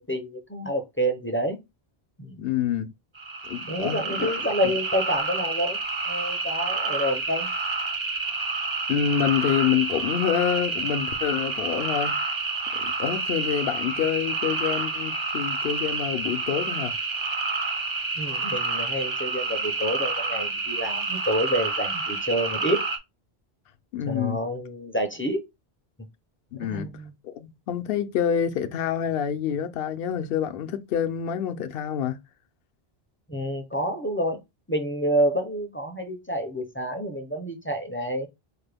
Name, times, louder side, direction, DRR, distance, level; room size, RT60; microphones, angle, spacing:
voice 1, 0.0-1.6 2.2-2.3 3.7-5.8 6.0-7.5 18.2-22.8 24.0-25.4 26.6-27.1 33.3-34.4 34.7-38.3, equal, 15° left, 0.5 m, -28 dB
voice 2, 2.4-2.9 3.5-4.4 8.9-12.2 12.8-16.9 23.9-24.4 26.5-26.9 27.2-32.2, left 9 dB, 70° left, 0.8 m, -27 dB
sound 1, 3.1-23.0, right 4 dB, 35° right, 0.6 m, -29 dB
4.8 x 2.1 x 3.3 m
omnidirectional pair, 1.0 m